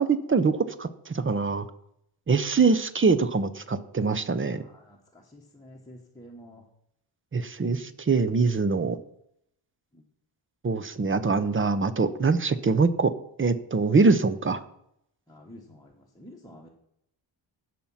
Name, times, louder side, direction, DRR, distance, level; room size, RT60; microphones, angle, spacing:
voice 1, 0.0-1.7 2.3-4.6 7.3-9.0 10.6-13.1 13.4-14.6, right 4 dB, 25° right, 14 dB, 0.6 m, -23 dB
voice 2, 4.6-6.6 9.9-10.0 15.3-16.7, equal, 5° left, -3 dB, 1.2 m, -49 dB
16.0 x 5.9 x 5.6 m, 0.75 s
wide cardioid pair, 170°, 49 cm